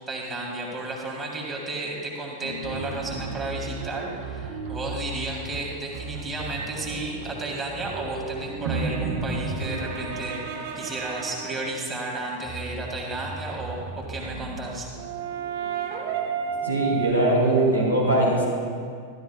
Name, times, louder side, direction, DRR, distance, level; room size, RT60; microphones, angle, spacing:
voice 1, 0.1-14.9, right 2 dB, 15° right, -2 dB, 2.0 m, -33 dB
sound 1, 2.4-5.6, right 1 dB, 85° right, 0.8 m, -40 dB
sound 2, 2.6-11.8 12.4-17.1, right 5 dB, 50° right, 0.9 m, -33 dB
voice 2, 16.6-18.5, right 1 dB, 85° left, -3 dB, 2.6 m, -21 dB
13.0 x 12.5 x 2.3 m, 2.1 s
figure-of-eight pair, 90°, 0 cm